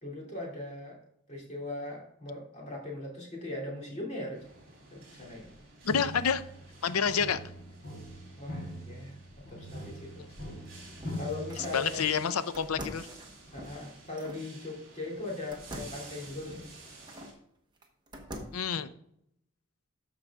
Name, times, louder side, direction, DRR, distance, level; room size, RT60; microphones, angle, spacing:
voice 1, 0.0-1.0 1.3-4.4 4.9-5.5 8.4-10.2 11.2-12.3 13.5-16.7, left 2 dB, 30° left, -2 dB, 2.7 m, -40 dB
sound 1, 4.3-17.3, right 3 dB, 40° right, 3.0 m, -52 dB
sound 2, 5.3-5.5 5.9-12.1, equal, 50° left, 3.4 m, -42 dB
voice 2, 5.8-6.4 6.8-7.4 10.2-10.3 11.7-13.1 18.5-18.9, left 6 dB, 85° left, 13 dB, 0.6 m, -28 dB
sound 3, 10.5-11.8 12.5-14.4 15.5-17.4 17.8-18.7, equal, 20° right, 1.0 m, -45 dB
13.0 x 4.8 x 3.6 m, 0.71 s
head